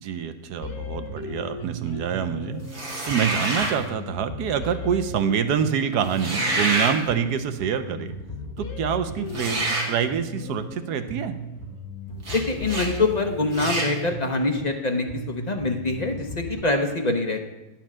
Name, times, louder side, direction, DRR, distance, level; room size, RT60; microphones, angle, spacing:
voice 1, 0.0-2.6 3.0-8.1 8.6-11.3, right 8 dB, 80° right, 10 dB, 1.2 m, -26 dB
sound 1, 0.6-16.6, left 1 dB, 65° left, 1.5 m, -36 dB
sound 2, 2.7-3.8 6.1-7.0 9.3-9.9 12.2-12.4 12.7-12.9 13.5-13.9, right 2 dB, 45° right, 1.9 m, -26 dB
voice 2, 12.3-17.5, left 2 dB, 35° left, 4 dB, 0.7 m, -25 dB
10.5 x 4.4 x 7.2 m, 0.97 s
omnidirectional pair, 1.7 m